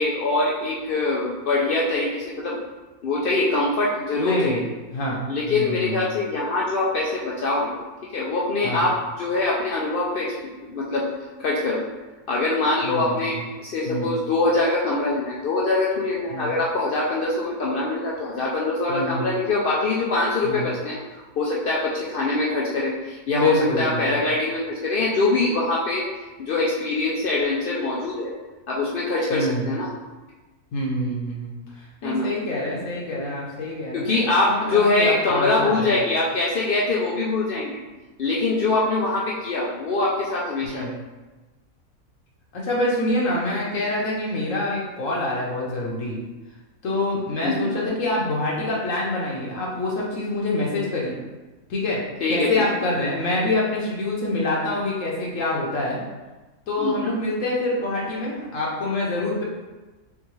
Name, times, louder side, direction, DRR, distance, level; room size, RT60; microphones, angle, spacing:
voice 1, 0.0-2.6 3.0-4.7 5.3-7.7 8.1-10.3 10.6-11.1 11.4-11.8 12.3-26.0 26.4-28.3 28.7-29.9 32.0-32.3 33.9-37.8 38.2-41.0 47.4-47.7 52.2-52.6 56.8-57.2, left 2 dB, 90° left, -4 dB, 0.4 m, -23 dB
voice 2, 4.2-4.6 4.9-5.2 5.5-6.1 8.6-8.9 12.8-13.4 13.8-14.2 16.3-16.5 18.9-19.3 20.4-20.7 23.3-24.2 29.3-29.7 30.7-36.0 40.6-41.0 42.5-46.2 46.8-51.2 51.7-52.0 52.3-56.0 56.7-59.4, left 1 dB, 65° left, -3 dB, 1.0 m, -26 dB
3.7 x 3.6 x 3.1 m, 1.2 s
omnidirectional pair, 1.6 m